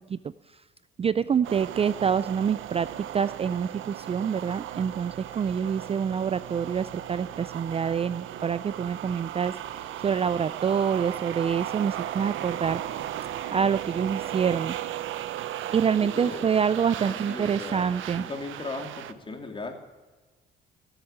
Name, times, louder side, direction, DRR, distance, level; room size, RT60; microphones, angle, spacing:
voice 1, 1.0-12.8 13.5-14.8 15.7-18.3, right 7 dB, 30° right, 16 dB, 0.4 m, -26 dB
sound 1, 1.4-19.1, right 11 dB, 80° right, 0.8 m, -36 dB
voice 2, 16.0-16.5 17.0-17.9 18.2-19.7, left 3 dB, 25° left, 4 dB, 2.9 m, -37 dB
16.5 x 8.0 x 8.5 m, 1.2 s
cardioid pair, 90°, 20 cm